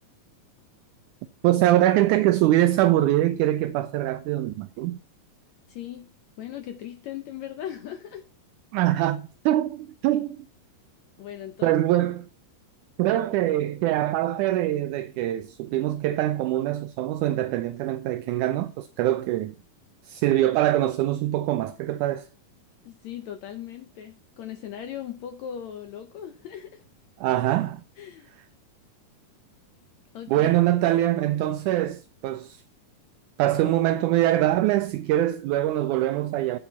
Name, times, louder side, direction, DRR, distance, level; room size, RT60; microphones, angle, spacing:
voice 1, 1.4-5.0 8.7-10.5 11.6-12.2 13.0-19.5 20.0-22.3 27.2-27.8 30.3-32.6 33.4-36.6, right 14 dB, 80° right, 1.8 m, -23 dB
voice 2, 5.7-6.1 6.4-8.2 11.2-11.8 13.1-13.2 22.8-26.9 28.0-28.3 30.1-30.5, left 10 dB, 70° left, 1.8 m, -38 dB
9.1 x 8.6 x 4.1 m
omnidirectional pair, 3.9 m